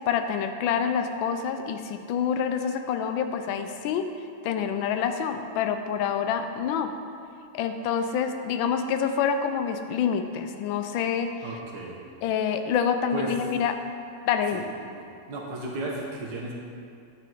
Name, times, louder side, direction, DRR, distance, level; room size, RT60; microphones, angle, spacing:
voice 1, 0.1-4.1 4.4-6.9 7.5-11.3 12.2-13.7 14.3-14.7, left 7 dB, 80° left, 8 dB, 1.3 m, -27 dB
voice 2, 11.4-12.0 13.1-13.3 14.5-14.6 15.0-16.5, right 2 dB, 60° right, -2 dB, 1.8 m, -34 dB
11.0 x 6.1 x 4.6 m, 2.4 s
omnidirectional pair, 2.2 m